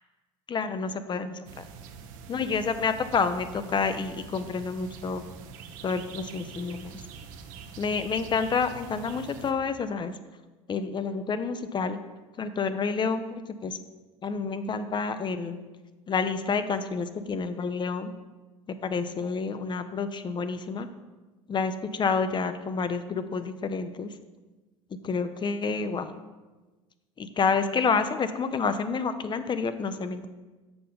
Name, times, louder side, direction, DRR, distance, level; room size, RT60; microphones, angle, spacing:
voice 1, 0.5-1.7 2.3-5.2 5.8-7.0 7.8-10.2 10.7-12.0 12.4-13.8 14.2-15.6 16.1-18.1 18.7-20.9 21.5-24.1 25.0-26.2 27.2-30.3, left 5 dB, 30° left, 11 dB, 0.6 m, -29 dB
sound 1, 1.4-9.5, right 6 dB, 60° right, 0.8 m, -45 dB
6.9 x 6.5 x 3.9 m, 1.2 s
hypercardioid pair, 70°, 16 cm